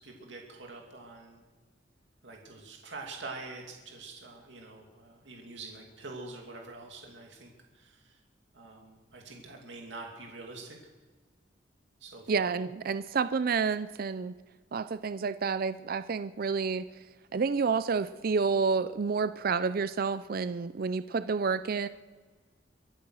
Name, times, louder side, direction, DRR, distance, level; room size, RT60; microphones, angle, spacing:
voice 1, 0.0-1.4 2.2-8.2 8.5-10.8 12.0-12.5, right 3 dB, 80° right, 0 dB, 2.6 m, -45 dB
voice 2, 12.3-14.3 14.7-16.9 17.3-21.9, right 5 dB, 55° right, 14 dB, 0.5 m, -29 dB
24.0 x 8.8 x 6.3 m, 1.4 s
head